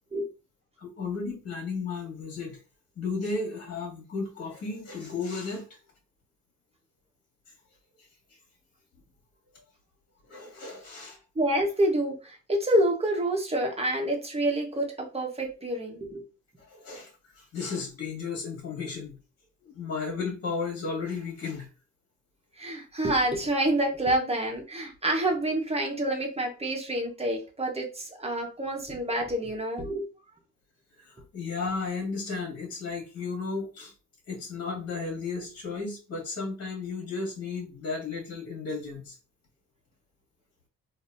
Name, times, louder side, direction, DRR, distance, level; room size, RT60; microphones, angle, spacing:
voice 1, 0.8-2.6 3.0-5.6 10.3-11.2 16.7-19.2 19.6-21.7 31.0-33.9 34.3-39.2, left 4 dB, 50° left, 0 dB, 1.9 m, -34 dB
voice 2, 11.3-16.2 22.6-30.1, right 1 dB, 20° right, 2 dB, 1.3 m, -28 dB
4.0 x 2.9 x 2.7 m, 0.32 s
cardioid pair, 90°, 30 cm